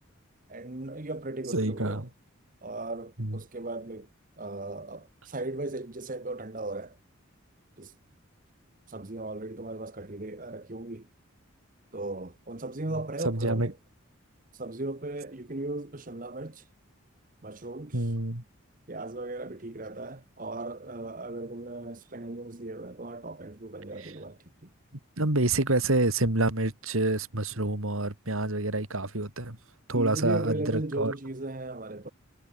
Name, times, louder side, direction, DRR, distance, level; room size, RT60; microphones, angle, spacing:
voice 1, 0.5-2.1 2.6-4.1 4.4-7.0 7.8-7.9 8.9-11.1 11.9-13.8 14.5-16.7 17.4-18.1 18.9-24.7 29.9-32.1, right 2 dB, 40° right, 1.1 m, -37 dB
voice 2, 1.5-2.0 3.2-3.4 13.2-13.7 17.9-18.4 24.0-24.1 25.2-29.6 29.9-31.1, right 2 dB, 80° right, 3.0 m, -27 dB
head